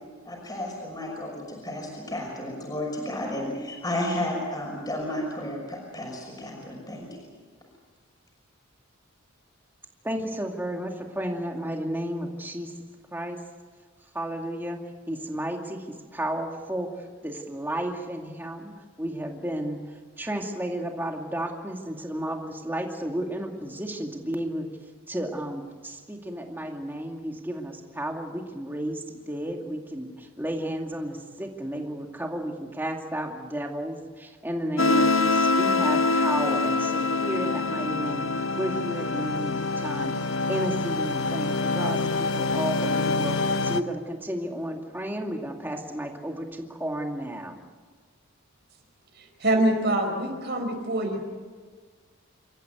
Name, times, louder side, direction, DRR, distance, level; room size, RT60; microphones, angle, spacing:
voice 1, 0.2-7.1, left 1 dB, 20° left, -1 dB, 6.0 m, -32 dB
voice 2, 10.0-12.7 13.1-13.4 14.1-14.8 15.1-18.7 19.0-24.7 25.1-47.6, right 1 dB, 10° right, 2 dB, 2.3 m, -33 dB
sound 1, 34.8-43.8, left 3 dB, 70° left, 1.0 m, -25 dB
voice 3, 49.2-51.2, right 1 dB, 50° right, 3 dB, 4.4 m, -25 dB
28.0 x 14.5 x 9.1 m, 1.5 s
head